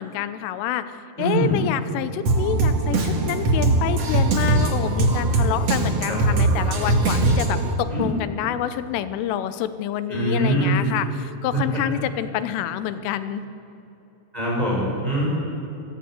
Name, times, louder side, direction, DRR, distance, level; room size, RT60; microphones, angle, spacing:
voice 1, 0.0-13.5, left 11 dB, 85° left, 12 dB, 3.4 m, -28 dB
voice 2, 1.2-1.6 6.1-6.2 7.0-7.1 7.9-8.0 10.1-10.8 11.5-11.8 14.3-15.3, right 1 dB, 10° right, -4 dB, 6.4 m, -23 dB
Drum kit, 2.3-7.7, right 2 dB, 45° right, 2.1 m, -21 dB
29.0 x 15.0 x 8.1 m, 3.0 s
omnidirectional pair, 5.6 m